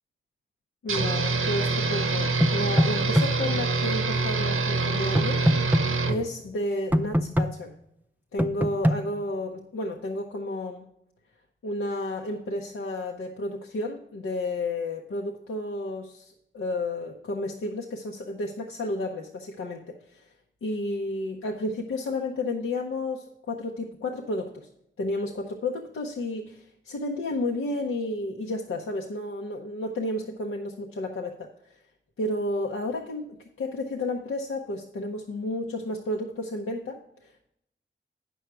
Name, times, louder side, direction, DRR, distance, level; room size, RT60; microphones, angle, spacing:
voice 1, 0.8-5.5 6.0-7.7 8.3-10.9 11.6-20.3 20.6-24.7 25.0-31.8 32.2-33.3 33.6-37.5, left 2 dB, 85° left, 1 dB, 0.8 m, -32 dB
sound 1, 0.9-6.2, right 3 dB, 85° right, 0.9 m, -25 dB
sound 2, 2.4-3.3 5.1-5.8 6.9-7.5 8.4-9.0, equal, 10° right, 0.5 m, -21 dB
9.2 x 6.3 x 4.5 m, 0.78 s
wide cardioid pair, 75°, 21 cm